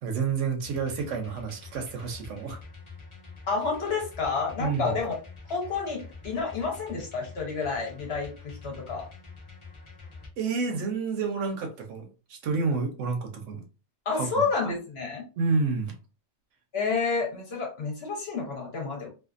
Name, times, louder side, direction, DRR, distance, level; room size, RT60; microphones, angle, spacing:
voice 1, 0.0-2.6 4.6-5.0 10.4-13.6 14.1-14.5 15.4-16.0, right 4 dB, 70° right, 0.9 m, -29 dB
sound 1, 0.6-10.3, left 4 dB, 40° left, 0.4 m, -46 dB
voice 2, 3.5-5.2 5.5-9.0 14.1-15.2 16.7-19.1, left 4 dB, 55° left, 1.0 m, -30 dB
2.5 x 2.4 x 2.4 m
omnidirectional pair, 1.4 m